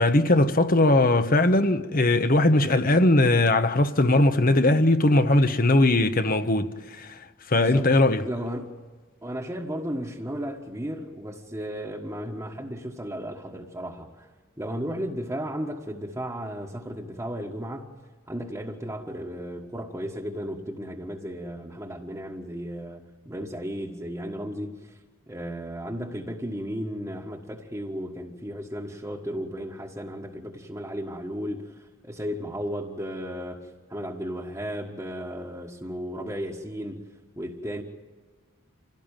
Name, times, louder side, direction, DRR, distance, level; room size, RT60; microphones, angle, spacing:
voice 1, 0.0-8.2, left 2 dB, 40° left, 1.2 m, -20 dB
voice 2, 7.5-7.9 8.2-8.8 9.2-14.3 14.6-17.9 18.3-25.0 25.3-37.0 37.3-37.8, equal, 15° right, 1.6 m, -34 dB
27.0 x 17.5 x 9.1 m
head